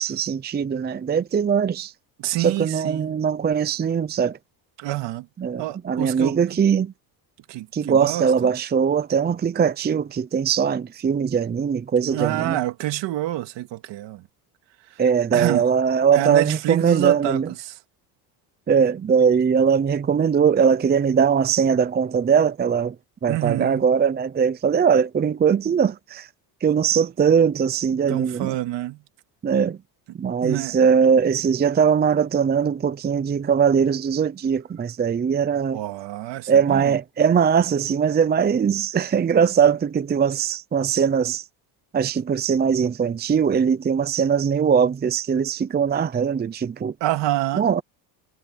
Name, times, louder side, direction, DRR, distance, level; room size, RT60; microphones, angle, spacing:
voice 1, 0.0-1.9 2.4-4.4 5.4-6.9 7.7-12.6 15.0-17.5 18.7-22.9 23.2-26.3 26.6-28.5 29.4-29.8 30.1-35.8 36.5-41.4 41.9-46.9 47.6-47.8, right 7 dB, 20° right, 0.6 m, -21 dB
voice 2, 2.2-3.2 4.8-5.3 5.6-6.4 7.5-8.5 12.1-14.2 14.9-15.0 15.3-15.6 16.1-17.7 23.3-23.9 28.1-29.0 30.4-30.8 35.7-36.9 47.0-47.7, right 15 dB, 65° right, 2.4 m, -27 dB
cardioid pair, 110°, 46 cm